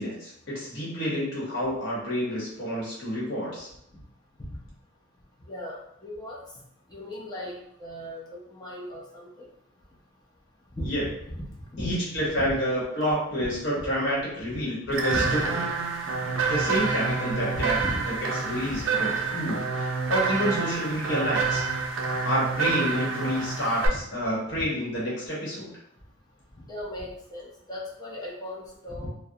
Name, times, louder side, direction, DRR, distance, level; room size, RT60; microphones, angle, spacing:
voice 1, 0.0-3.7 10.8-11.1 11.8-15.6 16.4-17.8 18.1-21.6 22.2-25.7, equal, 65° left, -6 dB, 1.0 m, -29 dB
voice 2, 6.0-6.4 6.9-8.2 8.5-9.3 10.7-10.9 11.7-11.9 12.5-12.6 13.8-13.9 15.1-15.3 17.5-18.1 18.6-18.8 23.9-24.0 24.5-24.6 26.7-29.1, left 1 dB, 20° left, -4 dB, 0.5 m, -36 dB
sound 1, 14.9-23.9, right 4 dB, 70° right, 0.4 m, -28 dB
2.3 x 2.0 x 2.7 m, 0.73 s
head